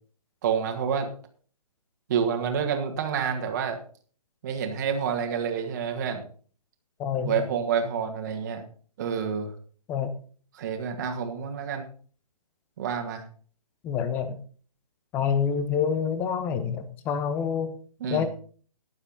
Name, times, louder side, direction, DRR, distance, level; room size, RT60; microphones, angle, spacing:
voice 1, 0.4-1.1 2.1-3.8 4.4-6.3 7.2-8.6 9.0-9.5 10.6-11.9 12.8-13.2 18.0-18.3, right 7 dB, 30° right, 4 dB, 1.8 m, -28 dB
voice 2, 7.0-7.5 9.9-10.1 13.8-14.4 15.1-17.7 18.1-18.3, left 7 dB, 10° left, 11 dB, 0.7 m, -27 dB
18.5 x 7.1 x 4.0 m, 0.43 s
figure-of-eight pair, 140°, 20 cm